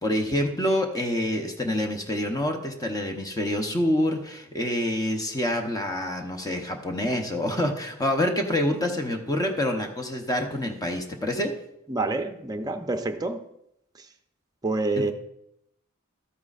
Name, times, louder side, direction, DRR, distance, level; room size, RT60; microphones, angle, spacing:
voice 1, 0.0-11.5 15.0-15.1, left 1 dB, 15° left, 4 dB, 0.8 m, -27 dB
voice 2, 11.9-13.4 14.6-15.1, right 2 dB, 20° right, 6 dB, 0.6 m, -27 dB
13.0 x 9.3 x 2.5 m, 0.79 s
head